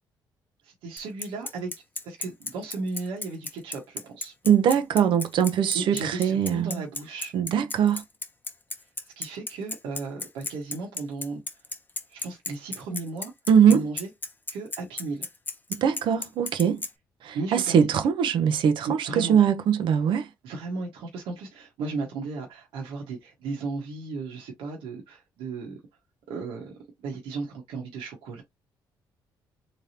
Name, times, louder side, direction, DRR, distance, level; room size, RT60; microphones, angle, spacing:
voice 1, 0.6-1.7 2.0-4.3 5.7-7.3 9.2-11.4 12.1-13.3 13.7-14.1 14.5-15.2 17.3-17.9 18.9-19.4 20.4-25.8 26.3-26.7 27.0-28.4, right 3 dB, 90° right, 1.4 m, -35 dB
Bicycle, 1.0-16.9, left 3 dB, 20° left, 0.9 m, -34 dB
voice 2, 4.4-6.7 7.3-8.0 13.5-13.8 15.7-16.8 17.3-20.3, right 8 dB, 70° right, 0.9 m, -21 dB
3.6 x 3.4 x 2.9 m
cardioid pair, 90°, 9 cm